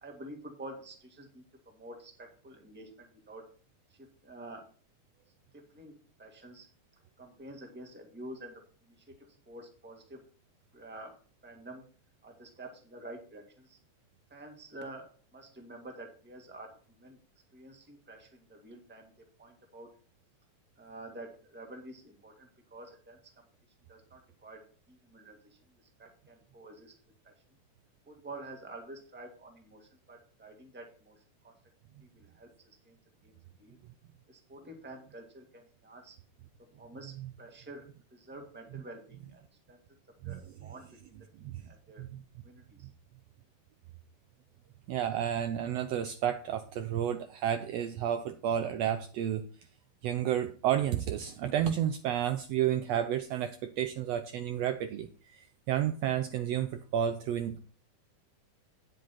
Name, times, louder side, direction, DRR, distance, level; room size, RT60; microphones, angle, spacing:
voice 1, 0.0-3.5 3.9-4.7 5.5-6.7 7.2-9.1 9.5-10.2 10.7-11.2 11.4-11.8 12.2-13.8 14.3-17.2 17.5-19.1 19.4-19.9 20.8-23.2 23.9-25.6 26.0-26.9 27.2-27.3 28.1-31.5 32.0-33.0 33.2-33.8 34.3-36.2 36.6-39.4 39.7-39.8 40.2-42.1 42.4-42.9, right 1 dB, 5° right, 2 dB, 1.1 m, -49 dB
voice 2, 44.9-49.4 50.0-57.6, right 10 dB, 90° right, 9 dB, 1.4 m, -31 dB
9.5 x 7.9 x 4.2 m, 0.41 s
omnidirectional pair, 3.6 m